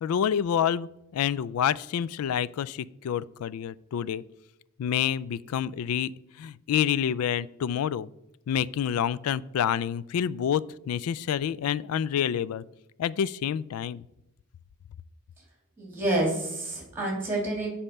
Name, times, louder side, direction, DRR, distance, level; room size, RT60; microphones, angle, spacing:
voice 1, 0.0-4.2 4.8-6.1 6.4-8.1 8.5-12.6 13.0-14.0, left 9 dB, 75° left, 19 dB, 0.3 m, -28 dB
voice 2, 15.8-17.7, right 2 dB, 10° right, -2 dB, 2.7 m, -28 dB
7.2 x 4.3 x 6.5 m, 0.85 s
head